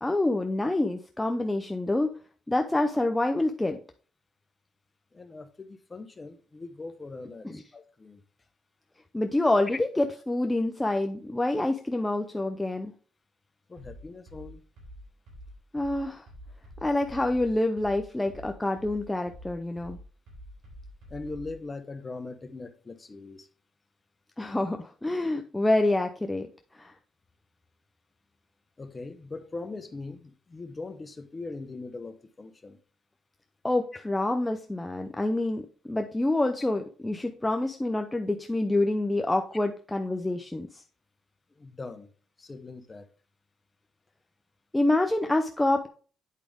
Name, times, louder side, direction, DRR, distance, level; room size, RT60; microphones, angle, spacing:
voice 1, 0.0-2.1 2.5-3.8 7.4-7.6 9.1-12.9 15.7-16.3 16.8-20.0 24.4-26.5 26.7-26.9 33.6-40.8 44.7-45.9, left 2 dB, 10° left, 0.6 m, -27 dB
voice 2, 5.1-8.2 13.7-14.6 21.1-23.5 28.8-32.8 41.5-42.1 42.4-43.1, left 3 dB, 30° left, 0.9 m, -41 dB
sound 1, 13.8-21.6, equal, 80° right, 3.6 m, -47 dB
8.4 x 4.9 x 3.5 m
cardioid pair, 90°, 0 cm